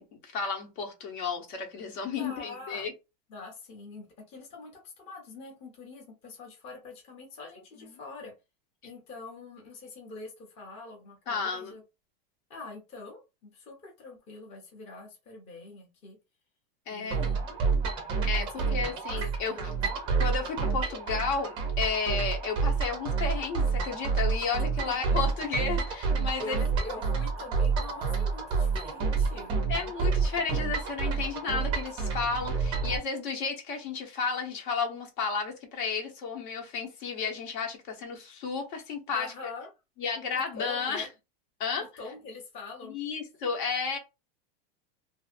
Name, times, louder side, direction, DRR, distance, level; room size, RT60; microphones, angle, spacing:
voice 1, 0.0-2.9 7.8-7.9 11.3-11.8 16.9-17.2 18.2-19.6 20.2-26.6 29.7-39.3 40.0-41.1 41.6-41.9 42.9-44.0, left 5 dB, 60° left, 1.0 m, -32 dB
voice 2, 2.2-2.9 3.3-8.3 8.8-11.8 12.5-16.2 16.9-17.4 18.4-18.5 18.9-19.0 19.4-19.8 24.8-25.3 26.4-29.5 39.1-39.7 40.3-41.1 42.0-43.0, left 3 dB, 20° left, 0.6 m, -44 dB
sound 1, 17.1-33.0, right 5 dB, 15° right, 0.4 m, -29 dB
2.6 x 2.5 x 2.5 m
supercardioid pair, 170°, 30 cm